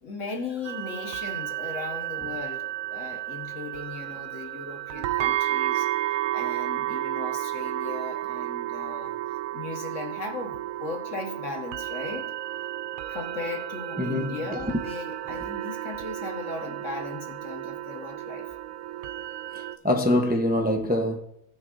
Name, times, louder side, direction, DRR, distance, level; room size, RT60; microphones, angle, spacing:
voice 1, 0.0-2.6 2.9-5.9 6.3-9.1 9.5-12.3 13.1-18.5, left 3 dB, 60° left, 1.7 m, -37 dB
sound 1, 0.6-19.8, right 14 dB, 75° right, 1.0 m, -32 dB
voice 2, 14.0-14.8 15.3-15.4 19.5-21.2, left 1 dB, 10° right, 0.6 m, -25 dB
17.5 x 9.7 x 2.6 m
omnidirectional pair, 1.5 m